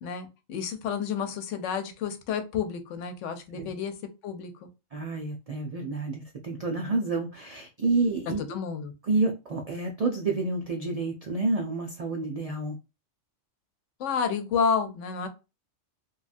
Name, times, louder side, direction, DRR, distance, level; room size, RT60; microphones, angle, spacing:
voice 1, 0.0-3.9 4.2-4.7 8.5-8.9 14.0-15.3, left 6 dB, 80° left, 0.9 m, -30 dB
voice 2, 4.9-8.4 9.1-12.8, right 3 dB, 70° right, 0.3 m, -29 dB
3.0 x 2.3 x 2.4 m
omnidirectional pair, 1.3 m